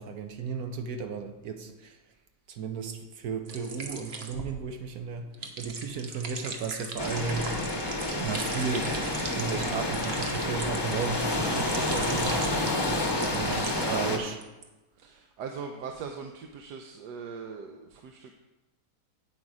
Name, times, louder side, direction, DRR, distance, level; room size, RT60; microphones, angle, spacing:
voice 1, 0.0-2.0 2.5-7.5 8.1-9.0 9.4-12.8 13.3-14.4, right 5 dB, 70° right, 6 dB, 1.3 m, -34 dB
sound 1, 3.5-14.0 14.2-14.6, right 4 dB, 45° right, 1.1 m, -40 dB
sound 2, 7.0-14.2, left 1 dB, 20° left, 0.9 m, -29 dB
voice 2, 13.6-14.1 15.0-18.3, right 6 dB, 90° right, 4 dB, 1.3 m, -40 dB
8.7 x 8.0 x 4.8 m, 1.1 s
omnidirectional pair, 1.7 m